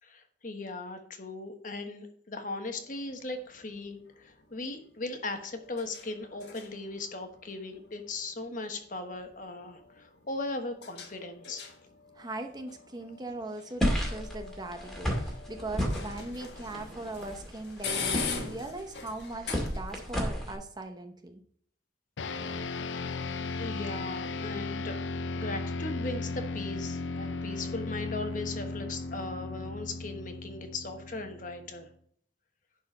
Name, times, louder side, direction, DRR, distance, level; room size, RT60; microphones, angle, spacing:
voice 1, 0.0-11.7 23.6-24.9 25.3-31.9, left 2 dB, 45° left, 6 dB, 1.2 m, -38 dB
sound 1, 2.7-20.1, left 5 dB, 65° left, 1.5 m, -43 dB
voice 2, 12.2-21.4, right 2 dB, 20° right, 5 dB, 0.8 m, -40 dB
sound 2, 13.8-20.5, equal, ahead, 2.1 m, -33 dB
sound 3, 22.2-31.8, left 3 dB, 85° left, 0.6 m, -36 dB
11.0 x 4.4 x 5.3 m, 0.62 s
head